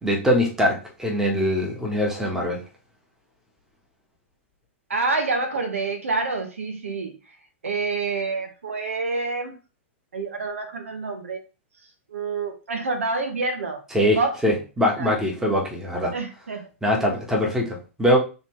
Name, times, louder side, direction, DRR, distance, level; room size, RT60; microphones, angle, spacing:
voice 1, 0.0-2.6 13.9-16.1 16.8-18.2, equal, 5° right, -1 dB, 1.4 m, -22 dB
voice 2, 4.9-7.1 7.6-9.5 10.1-11.4 12.1-13.8 14.1-14.6 15.0-15.2 16.1-16.7, right 3 dB, 85° right, 5 dB, 1.1 m, -27 dB
4.1 x 3.4 x 3.2 m, 0.32 s
hypercardioid pair, 120°, 7 cm